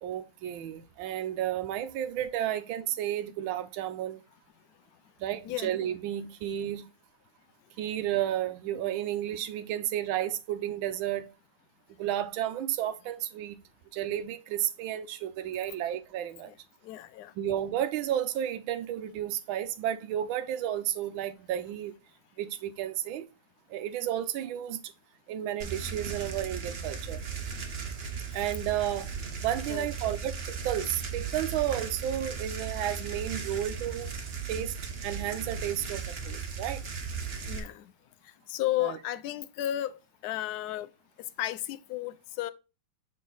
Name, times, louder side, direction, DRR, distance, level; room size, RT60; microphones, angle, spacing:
voice 1, 0.0-4.2 5.2-6.9 7.8-11.3 12.0-13.6 13.9-16.5 17.3-22.0 22.4-23.3 23.7-24.9 25.3-27.2 28.3-29.1 29.4-34.1 34.5-34.7 35.0-36.8 38.8-39.0, right 11 dB, 80° right, 1.5 m, -32 dB
voice 2, 16.8-17.3 29.7-29.9 37.5-37.8 38.5-40.0 40.2-40.9 41.4-42.5, left 14 dB, 75° left, 0.9 m, -33 dB
sound 1, 25.6-37.6, right 5 dB, 45° right, 0.8 m, -37 dB
6.5 x 4.1 x 3.9 m
omnidirectional pair, 2.2 m